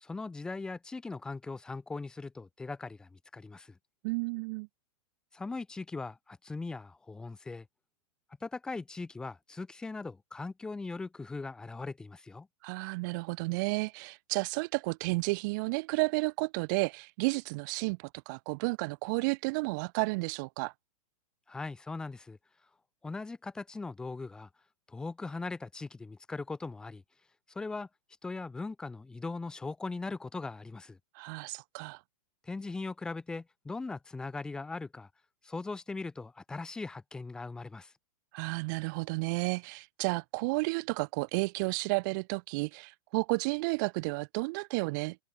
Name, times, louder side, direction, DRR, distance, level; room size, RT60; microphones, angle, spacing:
voice 1, 0.0-3.7 5.3-7.7 8.4-12.5 21.5-22.4 23.0-24.5 24.9-27.0 27.5-27.9 28.2-31.0 32.5-35.1 35.4-37.9, left 3 dB, 5° left, 0.7 m, -39 dB
voice 2, 4.0-4.7 12.6-20.7 31.1-32.0 38.3-45.2, right 27 dB, 30° right, 1.4 m, -32 dB
supercardioid pair, 170°, 19 cm